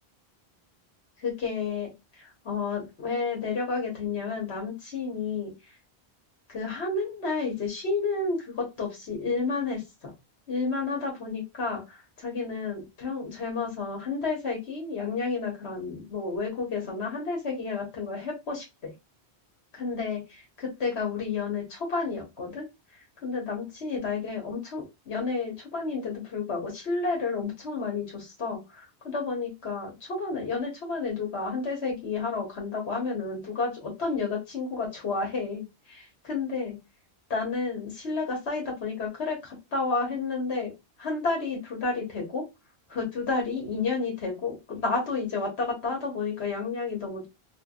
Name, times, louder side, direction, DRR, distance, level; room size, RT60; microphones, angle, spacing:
voice 1, 1.2-1.9 2.2-5.5 6.5-10.1 10.5-18.9 19.7-22.6 23.2-36.8 37.3-40.7 41.0-42.4 42.9-47.3, left 4 dB, 75° left, 0 dB, 1.4 m, -31 dB
3.3 x 2.3 x 2.3 m, 0.23 s
omnidirectional pair, 1.1 m